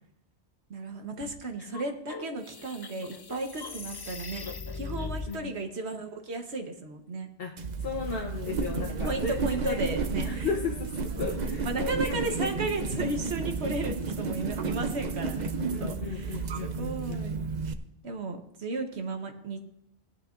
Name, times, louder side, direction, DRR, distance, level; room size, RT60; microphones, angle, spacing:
voice 1, 0.7-4.4 4.7-7.3 8.7-10.5 11.6-15.5 15.8-17.4 18.0-19.6, right 3 dB, 70° right, 5 dB, 1.4 m, -34 dB
sound 1, 1.6-5.4, left 4 dB, 40° left, 0.3 m, -39 dB
sound 2, 7.6-17.7, right 4 dB, 45° right, 0.7 m, -32 dB
voice 2, 7.8-9.8 10.2-10.9 11.1-12.5 12.9-13.0 15.7-17.2, left 4 dB, 60° left, 0 dB, 1.1 m, -35 dB
17.0 x 10.0 x 2.5 m, 0.80 s
omnidirectional pair, 1.1 m